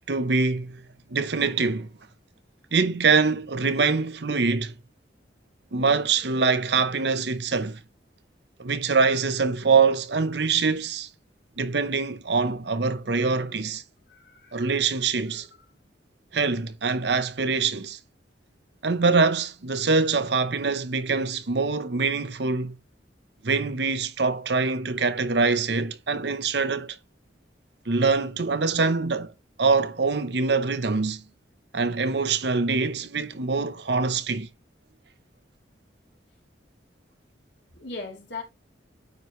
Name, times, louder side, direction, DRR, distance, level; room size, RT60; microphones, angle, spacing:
voice 1, 0.1-0.8 1.1-1.9 2.7-4.7 5.7-7.8 8.6-11.1 11.6-13.8 14.5-15.5 16.3-18.0 18.8-22.8 23.4-27.0 27.9-29.3 29.6-31.2 31.7-34.5, right 4 dB, 65° right, 0.8 m, -24 dB
voice 2, 14.1-14.8 37.7-38.4, left 3 dB, 65° left, 3.2 m, -39 dB
9.4 x 4.9 x 3.2 m
head